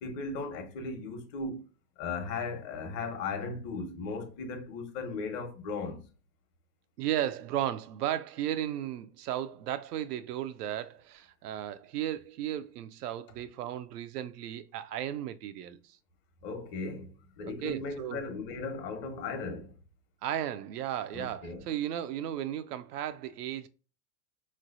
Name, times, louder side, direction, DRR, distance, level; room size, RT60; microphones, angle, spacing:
voice 1, 0.0-1.6 2.0-6.0 16.4-19.7 21.1-21.7, left 3 dB, 45° left, 1.2 m, -37 dB
voice 2, 7.0-16.0 17.6-18.2 20.2-23.7, right 11 dB, 75° right, 0.6 m, -35 dB
3.8 x 3.2 x 2.5 m
hypercardioid pair, 105°, 47 cm